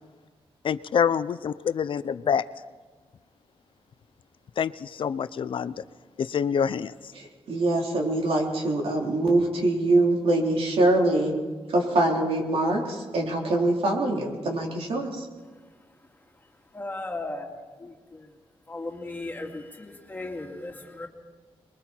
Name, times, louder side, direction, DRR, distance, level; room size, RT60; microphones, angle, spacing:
voice 1, 0.6-2.4 4.6-5.8 6.2-6.9, left 7 dB, 60° left, 14 dB, 0.5 m, -26 dB
voice 2, 7.1-11.3 11.7-15.3, right 2 dB, 80° right, -1 dB, 3.9 m, -24 dB
voice 3, 16.7-17.5 17.8-18.3 18.7-21.1, left 2 dB, 20° left, 0 dB, 2.5 m, -36 dB
27.5 x 21.5 x 4.5 m, 1.4 s
wide cardioid pair, 170°, 10 cm